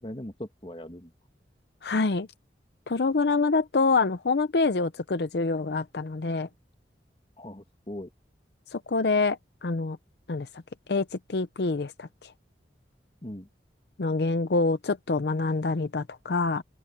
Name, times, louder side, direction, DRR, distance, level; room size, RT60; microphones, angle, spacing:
voice 1, 0.0-1.1 7.4-8.1 13.2-13.5, left 1 dB, 30° left, 2.0 m, -39 dB
voice 2, 1.8-2.3 2.9-6.5 8.7-10.0 10.3-10.5 10.9-12.3 14.0-16.6, left 3 dB, 65° left, 0.6 m, -26 dB
open air
head